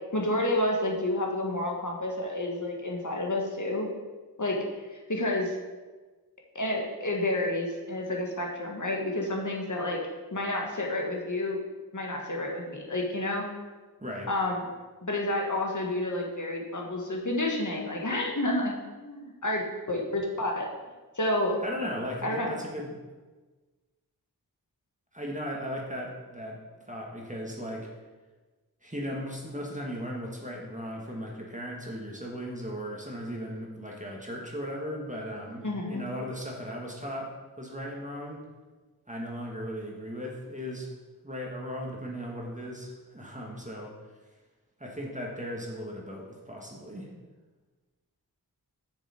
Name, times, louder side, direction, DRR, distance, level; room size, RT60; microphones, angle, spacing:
voice 1, 0.1-3.9 4.4-4.6 4.9-5.5 6.6-10.0 10.3-11.6 11.9-13.4 14.3-14.6 15.0-18.7 19.0-19.6 19.9-20.7 21.2-21.6 22.2-22.5 35.6-36.1, left 1 dB, 50° left, 0 dB, 1.7 m, -29 dB
voice 2, 21.6-23.0 25.1-26.6 26.9-27.9 28.8-37.3 37.6-38.4 39.1-40.9 41.2-43.9 44.8-47.1, equal, 20° right, -2 dB, 1.7 m, -37 dB
7.0 x 6.7 x 4.5 m, 1.3 s
cardioid pair, 40°, 40 cm